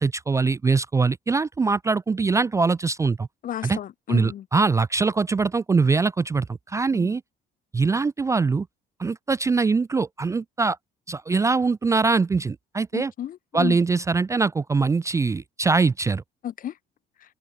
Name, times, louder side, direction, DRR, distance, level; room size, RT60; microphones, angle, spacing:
voice 1, 0.0-3.3 3.6-3.8 4.1-7.2 7.7-8.7 9.0-10.8 11.1-13.1 13.5-16.2, right 4 dB, 20° right, 0.4 m, -22 dB
voice 2, 3.4-4.4 6.9-7.1 12.9-13.8 16.4-16.7, left 11 dB, 55° left, 1.5 m, -32 dB
open air
cardioid pair, 110°, 17 cm